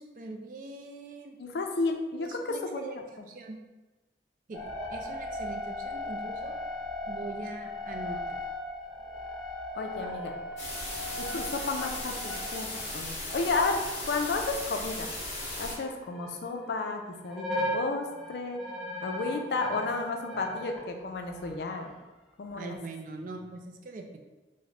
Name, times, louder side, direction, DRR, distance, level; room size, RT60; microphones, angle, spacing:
voice 1, 0.0-1.4 2.2-3.0 3.3-3.6 4.5-4.6 4.9-6.5 7.1-8.4 22.5-24.2, right 3 dB, 50° right, 3 dB, 0.3 m, -42 dB
voice 2, 1.4-2.9 9.7-10.3 11.2-12.7 12.9-13.8 14.1-15.1 15.6-18.6 19.0-21.9 22.4-22.8, left 3 dB, 65° left, 4 dB, 0.4 m, -32 dB
sound 1, 4.5-14.4 14.7-16.9 17.2-20.8 21.3-21.8, left 1 dB, ahead, 0.6 m, -38 dB
sound 2, 10.6-15.7, left 2 dB, 40° left, 0.9 m, -37 dB
3.3 x 2.1 x 3.6 m, 1.1 s
head